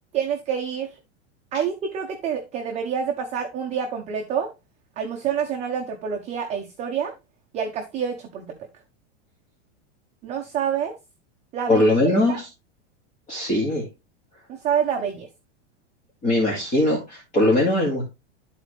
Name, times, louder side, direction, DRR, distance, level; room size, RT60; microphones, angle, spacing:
voice 1, 0.1-1.0 1.5-4.5 5.0-7.1 7.5-8.5 10.2-10.9 11.5-11.9 12.1-12.4 14.5-15.3, right 7 dB, 20° right, 2 dB, 0.8 m, -27 dB
voice 2, 11.7-12.5 13.3-13.9 16.2-18.0, left 1 dB, 20° left, -3 dB, 2.1 m, -20 dB
12.5 x 4.2 x 3.2 m, 0.25 s
supercardioid pair, 165°, 35 cm